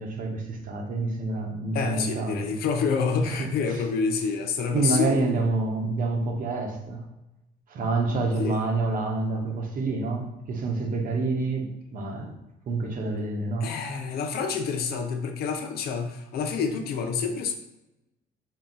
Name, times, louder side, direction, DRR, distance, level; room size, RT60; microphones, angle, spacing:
voice 1, 0.0-2.5 3.2-3.8 4.7-7.0 7.7-12.3 12.7-13.7, right 3 dB, 55° right, 1 dB, 0.9 m, -28 dB
voice 2, 1.7-5.4 8.4-8.6 13.6-17.5, left 5 dB, 65° left, 4 dB, 0.6 m, -28 dB
4.4 x 2.3 x 3.9 m, 0.92 s
cardioid pair, 110°, 17 cm